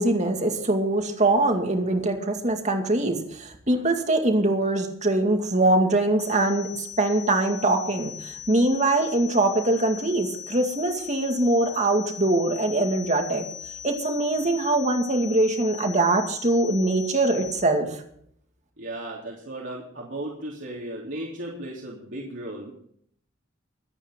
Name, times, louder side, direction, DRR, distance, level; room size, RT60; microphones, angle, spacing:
voice 1, 0.0-6.7 7.0-13.5 13.8-17.9, right 2 dB, 35° right, 4 dB, 2.2 m, -23 dB
sound 1, 6.2-17.6, left 9 dB, 40° left, 1.9 m, -40 dB
voice 2, 18.8-22.7, right 1 dB, 65° right, -4 dB, 3.3 m, -35 dB
24.5 x 9.2 x 3.8 m, 0.66 s
head